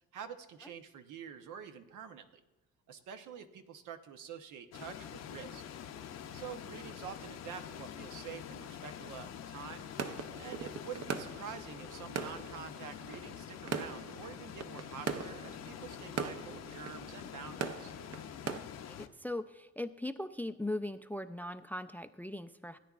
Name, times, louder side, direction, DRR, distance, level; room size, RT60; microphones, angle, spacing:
voice 1, 0.1-2.4 2.9-5.6 6.3-9.9 10.4-17.9, right 7 dB, 85° right, 8 dB, 0.9 m, -47 dB
sound 1, 4.7-19.1, left 9 dB, 60° left, 0.7 m, -46 dB
sound 2, 10.0-18.6, right 6 dB, 55° right, 0.7 m, -41 dB
voice 2, 18.9-22.8, left 1 dB, 5° left, 12 dB, 0.3 m, -39 dB
17.0 x 9.3 x 2.4 m, 0.99 s
cardioid pair, 90°, 30 cm